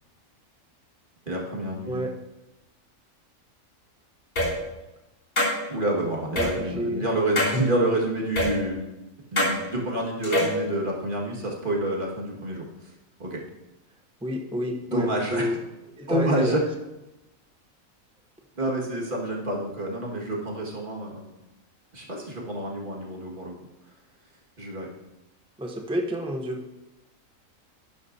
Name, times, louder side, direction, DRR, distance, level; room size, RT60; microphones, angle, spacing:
voice 1, 1.3-2.0 5.7-8.8 9.3-12.9 13.2-13.4 14.9-15.5 16.1-16.6 18.6-21.3 21.9-23.5 24.6-24.9, right 1 dB, 35° right, -1 dB, 1.9 m, -28 dB
sound 1, 4.4-4.5 5.4-5.5 6.4-6.5 7.4-7.6 8.4-8.5 9.4-9.5 10.2-10.6, left 1 dB, 85° left, 3.4 m, -23 dB
voice 2, 6.3-7.0 14.2-15.5 16.0-16.6 25.6-26.6, equal, 5° right, 3 dB, 0.4 m, -29 dB
11.0 x 10.5 x 2.7 m, 0.98 s
omnidirectional pair, 1.5 m